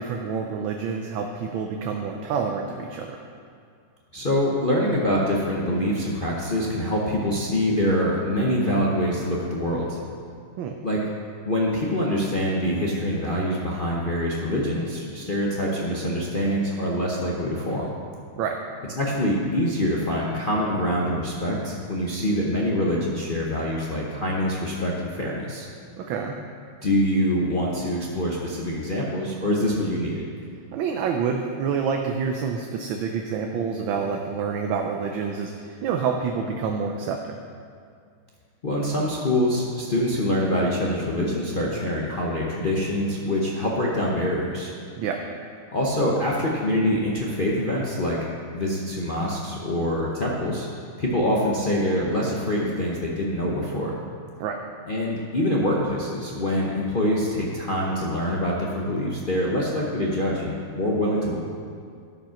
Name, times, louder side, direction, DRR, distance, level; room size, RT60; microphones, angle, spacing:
voice 1, 0.0-3.1 10.6-10.7 18.4-18.6 26.0-26.4 30.7-37.3 45.0-45.2 54.4-54.6, right 6 dB, 70° right, 2 dB, 1.3 m, -27 dB
voice 2, 4.1-10.0 10.8-11.0 11.4-17.9 19.0-25.7 26.8-30.2 38.6-44.7 45.7-48.2 48.5-50.7 51.0-53.9 54.9-61.4, left 1 dB, 55° left, -4 dB, 0.5 m, -25 dB
13.0 x 5.3 x 5.7 m, 2.2 s
omnidirectional pair, 2.4 m